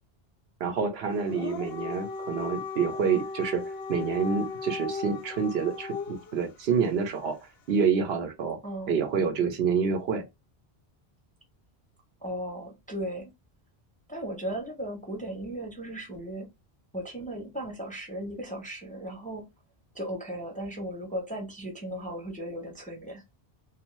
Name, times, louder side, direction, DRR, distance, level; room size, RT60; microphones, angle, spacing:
voice 1, 0.6-3.6 3.9-7.4 7.7-8.6 8.9-10.2, right 6 dB, 80° right, 0.9 m, -27 dB
Dog, 1.2-6.4, left 4 dB, 75° left, 0.9 m, -36 dB
voice 2, 12.2-13.3 14.1-16.5 16.9-19.5 19.9-23.2, right 1 dB, 10° left, 0.5 m, -36 dB
2.6 x 2.4 x 3.0 m
omnidirectional pair, 1.1 m